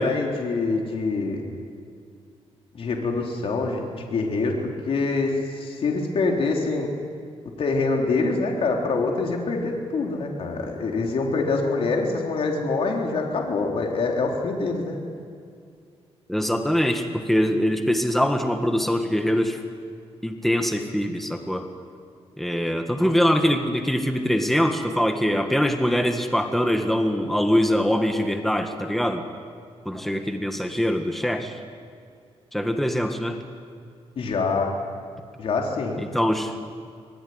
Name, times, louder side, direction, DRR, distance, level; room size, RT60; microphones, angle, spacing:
voice 1, 0.0-1.4 2.7-6.9 7.6-15.0 34.2-34.7 35.4-36.0, left 3 dB, 60° left, 1 dB, 3.9 m, -25 dB
voice 2, 16.3-19.6 20.2-21.7 22.4-29.2 29.9-31.6 32.5-33.4 36.0-36.5, equal, ahead, 5 dB, 1.8 m, -23 dB
25.0 x 20.5 x 9.6 m, 2.3 s
cardioid pair, 120°, 11 cm